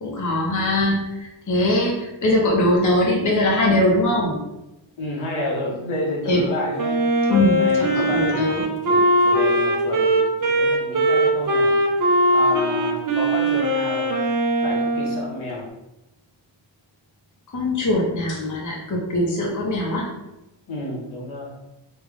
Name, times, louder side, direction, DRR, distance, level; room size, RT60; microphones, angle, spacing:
voice 1, 0.0-4.4 6.3-6.4 7.3-8.6 17.5-20.1, left 1 dB, 40° left, -2 dB, 0.7 m, -21 dB
voice 2, 5.0-7.0 7.6-8.6 8.9-11.7 12.3-14.1 14.6-15.7 20.7-21.5, left 1 dB, 80° left, -4 dB, 1.2 m, -30 dB
Wind instrument woodwind instrument, 6.8-15.3, right 1 dB, 45° right, 0.6 m, -20 dB
3.5 x 2.3 x 3.5 m, 0.95 s
wide cardioid pair, 135°, 47 cm